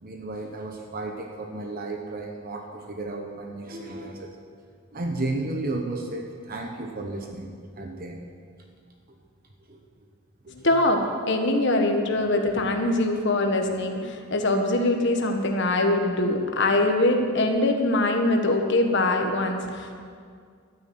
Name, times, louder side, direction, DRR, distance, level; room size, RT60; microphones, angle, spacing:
voice 1, 0.0-4.4 4.9-8.2 9.7-9.8 10.6-10.7, right 2 dB, 45° right, 3 dB, 1.0 m, -33 dB
voice 2, 10.5-20.0, left 2 dB, 55° left, 4 dB, 1.5 m, -23 dB
12.5 x 10.0 x 7.8 m, 2.1 s
head